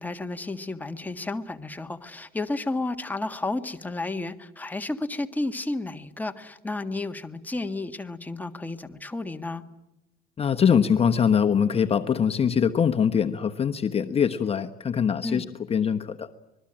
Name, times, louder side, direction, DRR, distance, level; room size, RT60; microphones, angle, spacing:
voice 1, 0.0-9.6 15.2-15.4, left 2 dB, 10° left, 7 dB, 1.6 m, -32 dB
voice 2, 10.4-15.4 15.7-16.3, left 7 dB, 35° left, 6 dB, 1.1 m, -23 dB
25.5 x 21.0 x 8.9 m, 0.94 s
cardioid pair, 110°, 17 cm